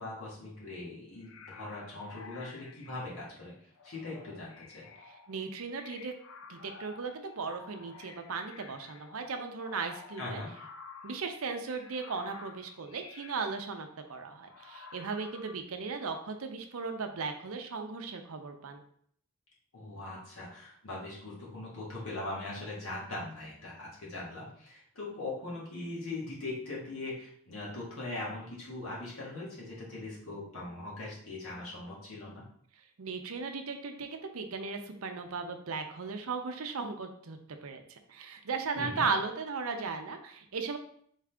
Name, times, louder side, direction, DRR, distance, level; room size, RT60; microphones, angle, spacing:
voice 1, 0.0-3.5 3.8-4.9 10.2-10.5 19.7-32.4 38.8-39.0, left 2 dB, 80° left, -5 dB, 1.8 m, -40 dB
sound 1, 1.2-3.2 3.8-11.3 11.6-13.7 14.5-15.6, left 5 dB, 65° left, 0.4 m, -51 dB
voice 2, 5.1-6.1 6.5-10.4 11.0-18.8 33.0-40.8, right 4 dB, 80° right, 6 dB, 0.6 m, -37 dB
4.0 x 3.7 x 3.4 m, 0.64 s
head